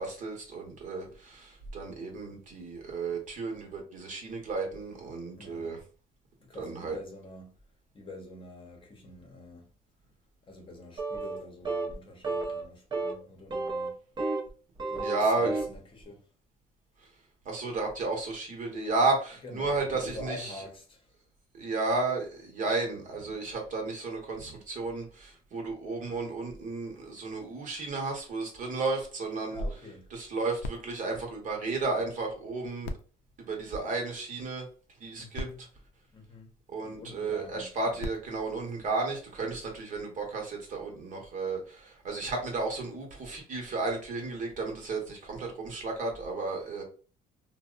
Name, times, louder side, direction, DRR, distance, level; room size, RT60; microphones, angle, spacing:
voice 1, 0.0-5.8 6.6-7.0 15.0-15.5 17.4-20.6 21.5-29.6 30.1-32.9 33.4-34.7 35.0-35.5 36.7-46.8, right 3 dB, 50° right, 1.0 m, -33 dB
voice 2, 5.4-5.7 6.4-7.5 7.9-9.7 10.4-14.0 14.9-16.3 19.4-21.1 29.5-30.1 35.2-35.6 36.1-36.5 36.8-38.1, left 1 dB, 30° left, 0.8 m, -46 dB
sound 1, 11.0-11.4 11.7-11.9 12.2-12.6 12.9-13.1 13.5-14.5 14.8-15.8, right 3 dB, 25° right, 0.6 m, -32 dB
sound 2, 30.6-32.3 32.8-34.4 35.1-35.2 35.3-36.9 37.7-39.6 40.3-40.4, left 2 dB, 75° left, 0.4 m, -44 dB
2.6 x 2.1 x 2.4 m
cardioid pair, 110°, 17 cm